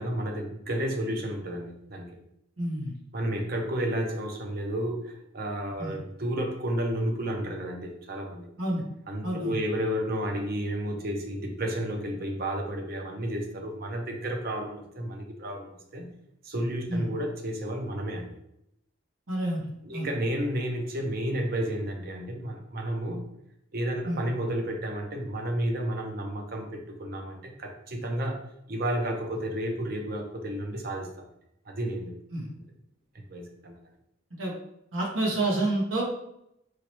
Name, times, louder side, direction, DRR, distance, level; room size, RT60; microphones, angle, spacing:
voice 1, 0.0-2.2 3.1-8.5 9.1-16.1 16.4-18.3 19.8-23.3 23.7-28.4 28.7-31.3 31.7-32.2 33.3-33.8, right 1 dB, 50° right, 2 dB, 0.7 m, -31 dB
voice 2, 2.6-2.9 5.8-5.9 8.6-8.8 9.2-9.5 16.9-17.0 19.3-19.6 19.9-20.1 24.0-24.2 32.3-32.5 34.4-34.5 34.9-36.0, right 1 dB, 85° right, -2 dB, 1.3 m, -28 dB
4.8 x 3.1 x 3.0 m, 0.79 s
head